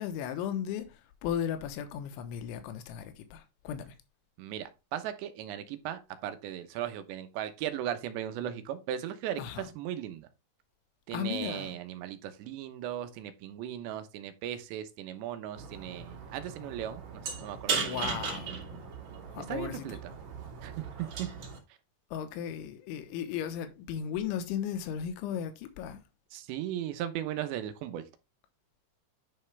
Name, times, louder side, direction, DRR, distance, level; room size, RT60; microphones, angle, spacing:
voice 1, 0.0-4.0 9.4-9.7 11.1-11.8 17.8-18.6 19.3-20.0 22.1-26.0, left 9 dB, 80° left, 3.5 m, -36 dB
voice 2, 4.4-10.3 11.1-18.0 19.4-20.1 20.6-21.3 26.3-28.0, right 11 dB, 75° right, 3.0 m, -37 dB
sound 1, 15.6-21.6, right 5 dB, 45° right, 2.9 m, -37 dB
10.5 x 5.5 x 3.3 m
omnidirectional pair, 5.3 m